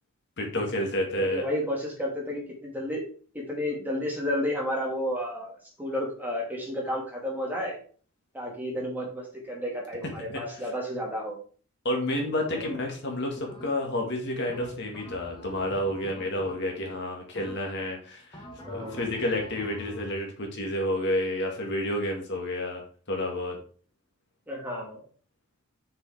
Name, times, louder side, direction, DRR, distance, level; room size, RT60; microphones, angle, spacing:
voice 1, 0.4-1.5 10.0-10.4 11.8-18.4 18.7-22.8 23.1-23.6, left 1 dB, 50° left, 1 dB, 2.0 m, -30 dB
voice 2, 1.1-3.0 3.3-7.8 8.3-11.4 12.5-12.7 18.6-19.0 24.5-25.0, equal, 10° right, -2 dB, 2.3 m, -32 dB
sound 1, 12.5-13.0 13.5-14.0 14.5-16.9 17.4-17.9 18.3-20.3, equal, 20° left, 1.3 m, -45 dB
6.6 x 5.6 x 4.9 m, 0.41 s
head